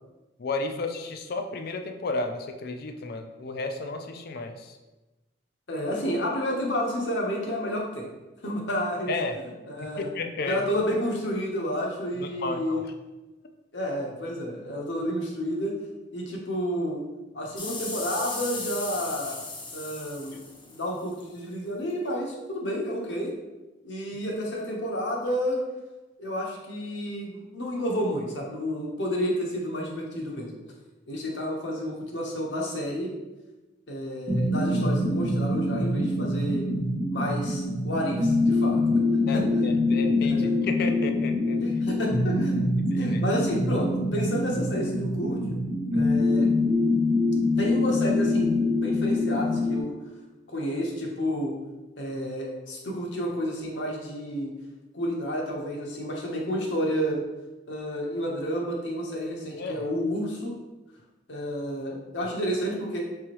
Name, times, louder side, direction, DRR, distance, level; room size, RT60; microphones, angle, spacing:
voice 1, 0.4-4.8 9.1-9.4 10.0-10.6 12.2-12.9 39.3-41.6 42.9-43.2 59.6-59.8, left 3 dB, 55° left, 5 dB, 0.4 m, -32 dB
voice 2, 5.7-8.1 8.4-10.1 10.5-12.8 13.7-15.8 16.1-17.0 17.3-19.4 19.7-20.4 20.7-23.3 23.8-25.6 26.2-30.5 31.1-33.1 33.9-36.7 37.1-39.0 39.3-39.7 40.2-40.5 41.6-42.5 43.0-45.5 45.9-46.5 47.6-49.9 50.5-51.5 52.0-54.5 54.9-57.2 57.7-60.6 61.3-63.1, equal, 85° left, -1 dB, 1.0 m, -30 dB
sound 1, 17.6-21.2 21.9-22.0, left 3 dB, 25° left, 0.7 m, -36 dB
sound 2, 34.3-49.8, left 2 dB, 40° right, 0.8 m, -24 dB
4.8 x 3.5 x 3.0 m, 1.1 s
head